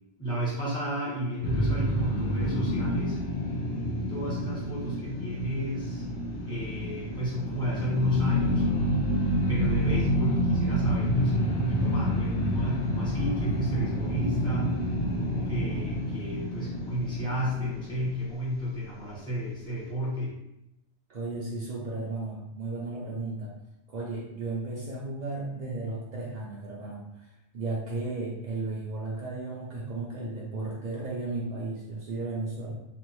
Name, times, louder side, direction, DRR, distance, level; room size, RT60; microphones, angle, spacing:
voice 1, 0.2-3.2 4.1-6.1 6.4-8.7 9.5-14.7 15.3-20.4, equal, 5° left, -8 dB, 0.9 m, -32 dB
sound 1, 1.4-18.6, equal, 60° left, 0.4 m, -28 dB
voice 2, 21.1-23.5 23.9-32.8, right 3 dB, 75° right, -4 dB, 0.4 m, -34 dB
2.6 x 2.0 x 3.0 m, 0.87 s
omnidirectional pair, 1.3 m